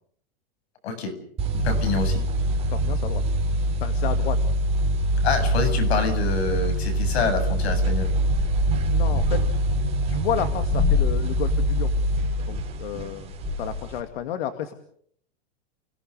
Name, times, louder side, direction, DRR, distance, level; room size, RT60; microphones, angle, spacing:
voice 1, 0.8-1.2 1.5-2.2 5.2-8.1, left 4 dB, 85° left, 8 dB, 7.8 m, -26 dB
sound 1, 1.4-14.0, equal, 20° right, 3.9 m, -24 dB
voice 2, 2.7-3.2 3.8-4.5 8.9-9.4 10.1-11.9 12.4-14.7, left 10 dB, 65° left, 9 dB, 2.3 m, -31 dB
29.5 x 18.5 x 6.7 m, 0.64 s
supercardioid pair, 165°, 31 cm